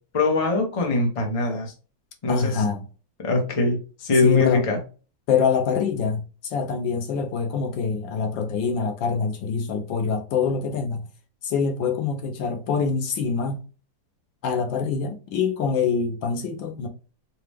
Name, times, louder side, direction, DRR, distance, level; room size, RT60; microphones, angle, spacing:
voice 1, 0.1-1.7 2.2-2.6 3.2-4.8, left 3 dB, 30° left, 0.7 m, -22 dB
voice 2, 2.3-2.9 4.2-4.6 5.3-11.0 11.4-13.6 14.4-16.9, left 5 dB, 80° left, 1.5 m, -25 dB
4.7 x 2.4 x 3.4 m
omnidirectional pair, 2.0 m